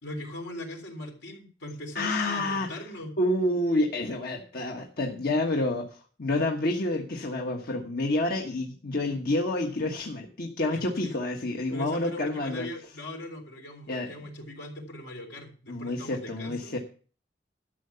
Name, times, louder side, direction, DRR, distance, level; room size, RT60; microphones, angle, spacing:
voice 1, 0.0-3.1 10.7-11.1 11.7-16.8, left 1 dB, 80° left, 2 dB, 3.7 m, -40 dB
voice 2, 1.9-2.7 3.2-12.7 13.9-14.1 15.7-16.8, left 2 dB, 60° left, 1 dB, 1.4 m, -28 dB
12.5 x 6.7 x 7.0 m, 0.40 s
head